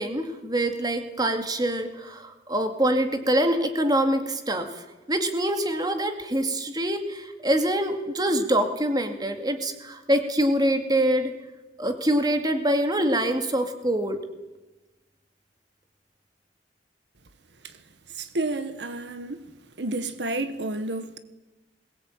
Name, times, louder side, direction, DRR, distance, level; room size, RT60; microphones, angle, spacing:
voice 1, 0.0-4.7 5.1-11.3 11.8-14.2, right 1 dB, 25° right, 2.1 m, -25 dB
voice 2, 18.2-19.4 19.8-21.2, right 2 dB, 75° right, 1.5 m, -30 dB
21.5 x 18.5 x 8.9 m
head